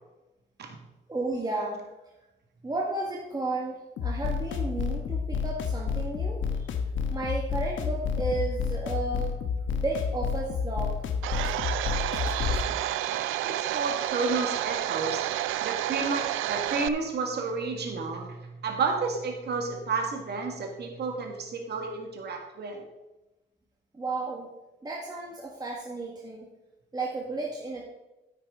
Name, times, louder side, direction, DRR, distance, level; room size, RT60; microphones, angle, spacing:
voice 1, 1.1-1.8 2.6-6.6 7.1-9.3 9.7-11.0 23.9-24.5 24.8-26.5 26.9-27.9, right 2 dB, 20° right, -2 dB, 1.6 m, -33 dB
sound 1, 4.0-12.7, left 6 dB, 75° left, 1.1 m, -30 dB
Domestic sounds home sounds, 11.2-16.9, right 13 dB, 90° right, 0.5 m, -30 dB
voice 2, 13.1-15.3 15.6-22.8, right 4 dB, 55° right, 2 dB, 1.9 m, -31 dB
9.8 x 9.4 x 3.7 m, 1.0 s
cardioid pair, 90°, 20 cm